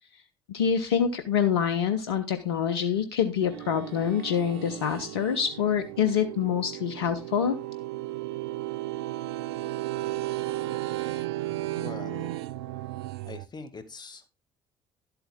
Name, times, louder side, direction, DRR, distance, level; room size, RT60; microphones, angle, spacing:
voice 1, 0.5-7.6, left 8 dB, 90° left, 9 dB, 0.8 m, -26 dB
sound 1, 3.4-13.5, right 16 dB, 85° right, 0.5 m, -34 dB
voice 2, 11.8-12.4 13.3-14.3, left 4 dB, 35° left, 9 dB, 2.2 m, -42 dB
11.5 x 7.9 x 3.6 m, 0.28 s
hypercardioid pair, 60°, 13 cm